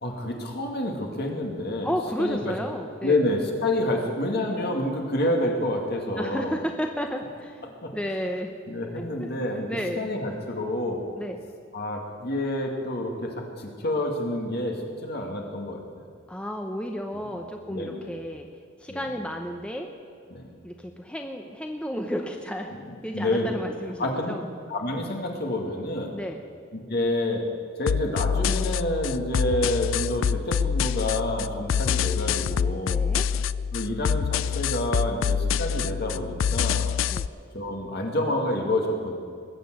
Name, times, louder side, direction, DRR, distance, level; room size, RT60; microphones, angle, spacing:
voice 1, 0.0-1.9 2.2-2.6 3.0-6.6 7.6-7.9 8.7-9.7 10.0-11.0 11.7-16.1 17.1-17.2 17.7-18.1 18.9-19.1 20.3-20.5 22.8-23.6 24.0-24.3 24.7-26.1 26.7-27.4 27.8-33.1 33.7-36.9 37.5-39.1, left 1 dB, 50° left, 1 dB, 2.3 m, -28 dB
voice 2, 1.8-3.3 6.2-8.5 9.2-9.3 9.7-10.1 11.2-11.4 16.3-18.5 18.8-19.9 20.6-24.5 26.1-26.4 32.9-33.3 37.1-37.3, equal, 5° left, 3 dB, 0.8 m, -32 dB
sound 1, 27.9-37.3, left 7 dB, 70° left, 0.4 m, -26 dB
20.5 x 7.8 x 7.7 m, 2.3 s
head